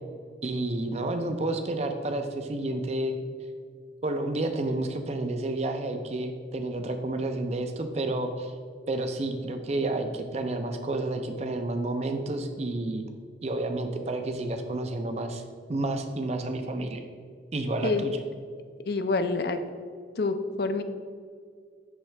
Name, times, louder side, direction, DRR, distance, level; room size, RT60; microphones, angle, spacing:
voice 1, 0.4-3.2 4.0-8.5 8.9-13.0 13.4-15.4 15.7-17.0 17.5-18.2, right 2 dB, 35° right, 6 dB, 0.4 m, -30 dB
voice 2, 18.9-19.6 20.2-20.8, left 3 dB, 55° left, 9 dB, 0.4 m, -27 dB
10.5 x 3.6 x 3.3 m, 2.1 s
head